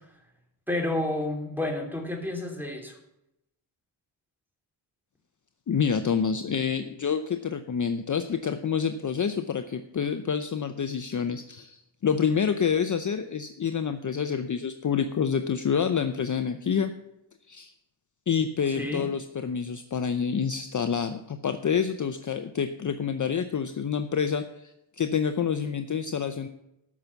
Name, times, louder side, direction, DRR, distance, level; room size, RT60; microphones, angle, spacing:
voice 1, 0.7-2.9 18.7-19.0, left 1 dB, 5° right, 2 dB, 3.0 m, -30 dB
voice 2, 5.7-16.9 17.5-17.7 18.3-26.5, left 7 dB, 40° left, 8 dB, 0.7 m, -28 dB
13.5 x 6.0 x 7.0 m, 0.84 s
cardioid pair, 100°, 48 cm